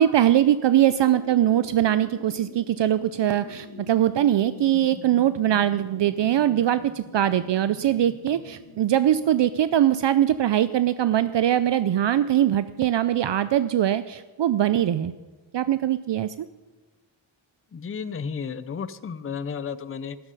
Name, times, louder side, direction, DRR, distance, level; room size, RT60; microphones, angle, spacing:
voice 1, 0.0-15.1 15.5-16.3, right 11 dB, 65° right, 14 dB, 0.5 m, -22 dB
sound 1, 0.7-9.3, left 4 dB, 60° left, 1.8 m, -45 dB
voice 2, 17.7-20.2, left 6 dB, 30° left, 14 dB, 0.5 m, -33 dB
13.0 x 11.5 x 5.4 m, 1.3 s
wide cardioid pair, 145°, 48 cm